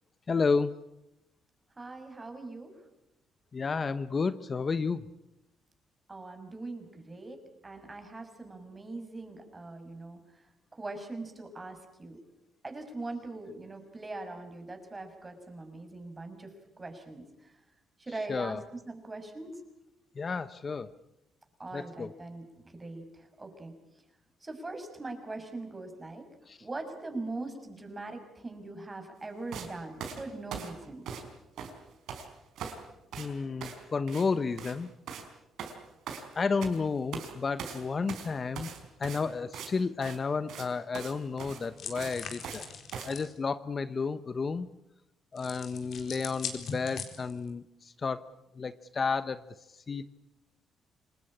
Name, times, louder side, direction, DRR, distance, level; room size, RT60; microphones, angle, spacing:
voice 1, 0.3-0.7 3.5-5.0 18.3-18.6 20.2-20.9 21.7-22.1 26.5-26.6 33.2-34.9 36.3-38.7 39.0-42.6 43.1-44.7 45.3-48.2 48.6-49.4 49.9-50.0, left 4 dB, 35° left, 13 dB, 1.0 m, -31 dB
voice 2, 1.8-2.7 6.1-10.2 10.8-12.2 12.6-16.5 16.8-17.5 18.0-19.6 21.6-23.7 24.4-26.3 26.6-31.0, right 2 dB, 25° right, 6 dB, 6.4 m, -41 dB
sound 1, 29.5-29.7 30.0-31.3 31.6-32.3 32.5-32.8 33.1-33.3 33.6-33.8 34.1-34.3 34.5-34.8 35.1-35.3 35.6-36.8 37.1-37.3 37.6-39.7 40.0-40.2 40.5-40.7 40.9-41.1 41.4-42.6 42.9-43.1, right 7 dB, 80° right, 4.9 m, -41 dB
sound 2, 41.8-43.3 45.4-47.5, left 6 dB, 65° left, 4.5 m, -41 dB
27.0 x 20.5 x 8.7 m, 0.90 s
cardioid pair, 90°, 0 cm